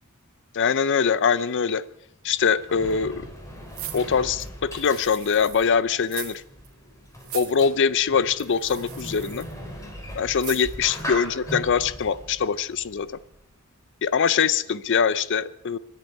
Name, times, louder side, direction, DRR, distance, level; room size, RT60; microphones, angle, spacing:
voice 1, 0.5-1.8 2.2-3.3 3.9-6.4 7.3-9.5 10.2-13.1 14.0-15.8, left 6 dB, 55° left, 17 dB, 0.5 m, -23 dB
Sliding door, 2.1-13.6, equal, 15° left, 3.3 m, -39 dB
sound 1, 3.7-5.7 6.0-6.4 6.6-6.7 7.2-7.6 8.4-9.5 10.4-10.9 11.3-11.4, right 12 dB, 70° right, 1.9 m, -39 dB
25.0 x 10.5 x 4.7 m, 0.79 s
head